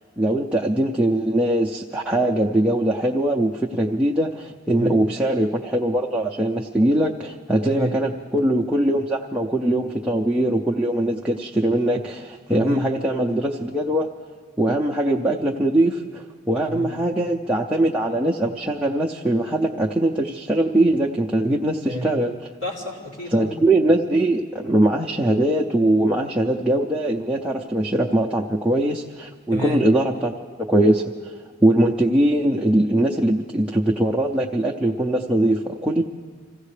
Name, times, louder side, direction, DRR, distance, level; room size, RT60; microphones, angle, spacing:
voice 1, 0.2-14.1 14.6-22.4 23.3-30.3 30.7-31.3 31.6-36.0, right 1 dB, 5° right, -3 dB, 0.5 m, -21 dB
voice 2, 7.6-7.9 12.5-12.8 16.7-16.9 21.8-22.1 22.6-23.6 29.5-29.8, equal, 65° left, -4 dB, 3.6 m, -30 dB
26.5 x 16.0 x 3.3 m, 1.5 s
head